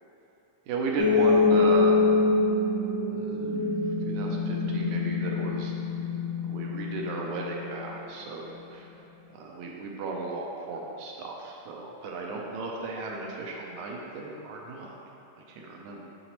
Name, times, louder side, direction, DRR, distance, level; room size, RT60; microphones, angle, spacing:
voice 1, 0.7-2.0 3.1-3.7 4.1-5.7 6.5-8.8 9.3-14.9 15.6-16.0, right 3 dB, 80° right, -1 dB, 1.8 m, -35 dB
sound 1, 1.0-7.9, left 3 dB, 50° left, 1.2 m, -25 dB
9.3 x 4.0 x 2.9 m, 2.9 s
omnidirectional pair, 3.7 m